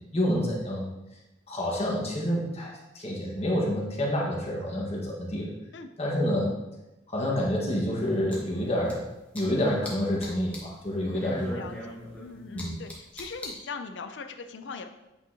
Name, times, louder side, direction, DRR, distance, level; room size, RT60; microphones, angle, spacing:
voice 1, 0.1-0.9 1.5-5.5 6.0-6.5 7.1-9.0 9.3-11.6 12.5-12.7, left 1 dB, 35° left, -2 dB, 1.5 m, -28 dB
sound 1, 8.0-9.0 9.4-9.9 10.2-10.7 11.0-13.5, left 1 dB, 10° left, 1.4 m, -40 dB
voice 2, 11.6-14.9, left 4 dB, 75° left, 7 dB, 0.5 m, -40 dB
8.5 x 5.5 x 2.8 m, 0.98 s
head